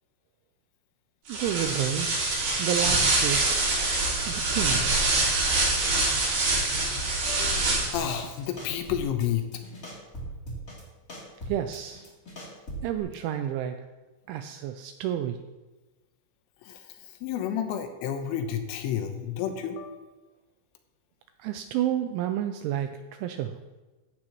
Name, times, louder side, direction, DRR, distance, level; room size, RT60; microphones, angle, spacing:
sound 1, 1.3-8.1, right 2 dB, 60° right, 6.6 m, -25 dB
voice 1, 1.3-2.2 2.6-3.6 4.3-4.9 11.5-12.1 12.8-13.8 14.3-15.4 21.4-23.6, right 11 dB, 85° right, 7 dB, 2.7 m, -30 dB
voice 2, 7.3-7.7 7.9-9.5 16.7-16.8 17.2-20.0, left 9 dB, 80° left, 6 dB, 3.4 m, -30 dB
sound 2, 7.9-8.3 8.6-9.3 9.5-10.8 11.1-13.0, right 1 dB, 25° left, 2.1 m, -39 dB
14.5 x 12.5 x 3.0 m, 1.2 s
omnidirectional pair, 5.9 m